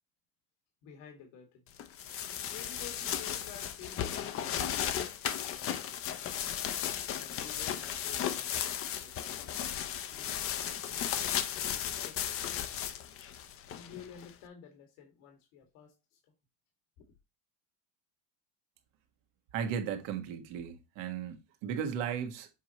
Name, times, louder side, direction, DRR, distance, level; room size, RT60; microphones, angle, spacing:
voice 1, 0.8-1.8 2.5-6.5 7.2-11.0 11.5-12.9 13.8-16.2, left 7 dB, 75° left, 2.1 m, -53 dB
sound 1, 1.8-14.3, left 10 dB, 40° left, 0.8 m, -35 dB
voice 2, 19.5-22.5, right 8 dB, 75° right, 1.6 m, -36 dB
7.5 x 4.5 x 3.0 m
cardioid pair, 145°, 34 cm